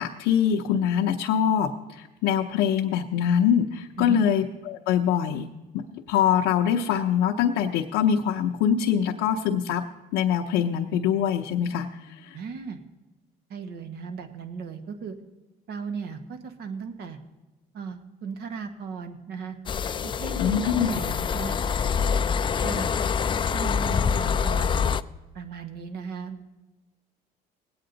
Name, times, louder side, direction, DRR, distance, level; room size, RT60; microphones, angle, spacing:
voice 1, 0.0-5.5 5.7-9.8 10.1-12.4 20.4-20.9, left 9 dB, 85° left, 0 dB, 0.7 m, -24 dB
voice 2, 12.3-12.8 13.5-15.1 15.7-17.2 17.7-19.6 20.0-21.6 22.6-22.9 23.5-25.0 25.3-26.4, right 5 dB, 70° right, 7 dB, 1.4 m, -36 dB
sound 1, 19.7-25.0, left 6 dB, 30° left, 0.4 m, -25 dB
19.0 x 8.7 x 3.9 m, 1.1 s
supercardioid pair, 90°, 18 cm